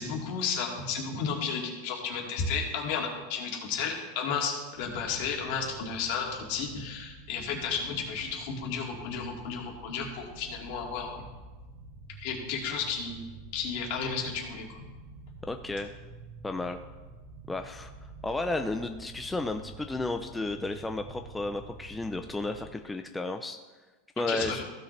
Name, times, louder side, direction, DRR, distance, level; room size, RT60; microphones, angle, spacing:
voice 1, 0.0-11.2 12.2-13.2 13.5-14.7 24.3-24.6, left 5 dB, 60° left, 0 dB, 2.2 m, -33 dB
sound 1, 4.7-22.7, right 3 dB, 40° right, 1.7 m, -48 dB
voice 2, 15.4-15.9 16.4-16.8 17.5-23.6 24.2-24.6, left 2 dB, 10° left, 6 dB, 0.4 m, -33 dB
15.0 x 6.5 x 3.2 m, 1.2 s
supercardioid pair, 140°, 0 cm